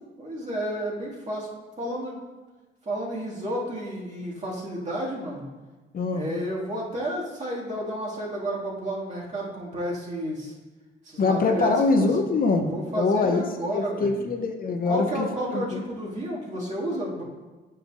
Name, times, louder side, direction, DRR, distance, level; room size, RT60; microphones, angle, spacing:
voice 1, 0.2-1.5 1.8-2.2 2.9-5.4 6.1-10.5 11.0-12.1 12.7-14.2 14.9-17.2, right 1 dB, 35° right, -5 dB, 2.0 m, -31 dB
voice 2, 5.9-6.3 11.2-13.4 13.7-15.8, left 3 dB, 45° left, 4 dB, 0.6 m, -24 dB
9.0 x 5.7 x 2.5 m, 1.2 s
cardioid pair, 90°, 20 cm